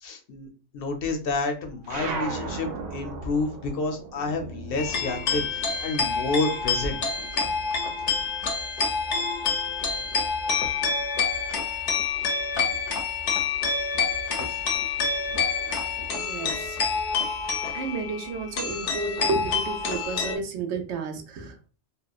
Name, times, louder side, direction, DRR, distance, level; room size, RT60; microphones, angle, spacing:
voice 1, 0.0-0.5 0.7-7.0 14.5-14.6, left 3 dB, 65° left, 5 dB, 0.7 m, -29 dB
sound 1, 1.8-6.7 7.0-8.5, right 3 dB, 50° right, 0.5 m, -37 dB
sound 2, 4.8-20.4, left 5 dB, 85° left, 0.9 m, -27 dB
voice 2, 16.1-16.8 17.7-21.7, right 4 dB, 90° right, 6 dB, 0.9 m, -32 dB
2.9 x 2.0 x 2.3 m, 0.35 s
omnidirectional pair, 1.2 m